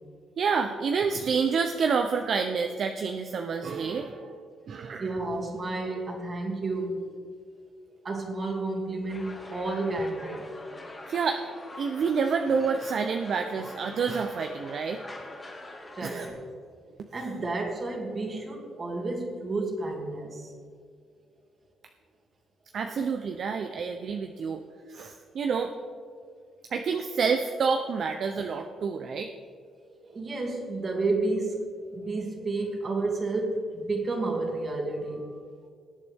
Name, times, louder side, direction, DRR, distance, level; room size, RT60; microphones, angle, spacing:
voice 1, 0.4-4.4 4.7-5.0 11.1-11.4 11.8-15.0 16.0-16.3 22.7-24.6 24.9-25.7 26.7-29.3, right 5 dB, 60° right, 5 dB, 0.6 m, -28 dB
voice 2, 5.0-7.1 8.0-10.5 15.9-16.4 17.0-20.5 22.9-23.0 29.9-35.4, right 2 dB, 40° right, 0 dB, 2.5 m, -31 dB
sound 1, 9.1-16.3, left 1 dB, 20° left, 2.6 m, -44 dB
20.0 x 8.3 x 3.6 m, 2.1 s
cardioid pair, 90°, 0 cm